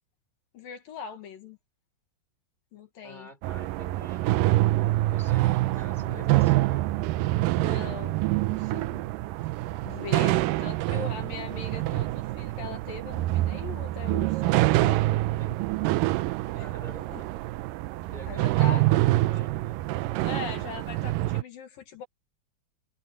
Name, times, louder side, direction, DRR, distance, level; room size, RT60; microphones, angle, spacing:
voice 1, 0.5-1.6 2.7-3.3 5.9-6.3 7.5-9.0 9.8-15.0 16.5-16.7 17.1-17.2 18.3-18.8 20.2-22.1, left 7 dB, 65° left, 3.4 m, -40 dB
voice 2, 3.0-4.4 4.9-7.1 10.7-11.1 15.4-15.5 16.2-16.3 16.6-17.3 18.1-19.8, equal, 10° left, 4.0 m, -48 dB
sound 1, 3.4-21.4, right 17 dB, 85° right, 2.0 m, -26 dB
omnidirectional pair, 4.5 m